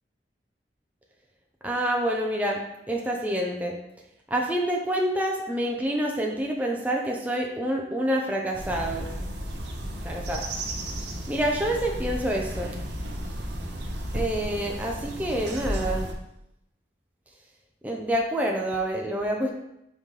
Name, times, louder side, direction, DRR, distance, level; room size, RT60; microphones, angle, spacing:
voice 1, 1.6-2.6 2.9-3.8 4.3-9.1 10.0-10.5 11.3-12.7 14.1-16.1 17.8-19.5, right 1 dB, 10° right, -1 dB, 0.6 m, -27 dB
sound 1, 8.5-16.1, right 1 dB, 85° right, 0.9 m, -33 dB
5.5 x 5.4 x 3.2 m, 0.82 s
head